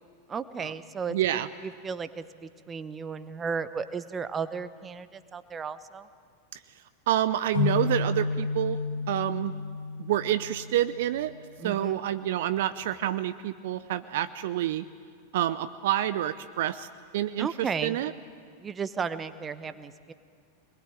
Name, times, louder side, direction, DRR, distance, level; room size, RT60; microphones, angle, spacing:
voice 1, 0.3-6.1 11.6-12.0 17.4-18.0 18.6-20.1, right 5 dB, 20° right, 13 dB, 1.0 m, -34 dB
voice 2, 1.1-1.5 6.5-6.6 7.1-8.8 9.1-9.5 10.0-11.3 11.6-14.8 15.3-16.9 17.1-18.1, right 12 dB, 55° right, 14 dB, 0.6 m, -28 dB
sound 1, 7.5-11.1, left 4 dB, 85° left, 2.7 m, -31 dB
24.5 x 20.5 x 9.0 m, 2.1 s
figure-of-eight pair, 90°, 0 cm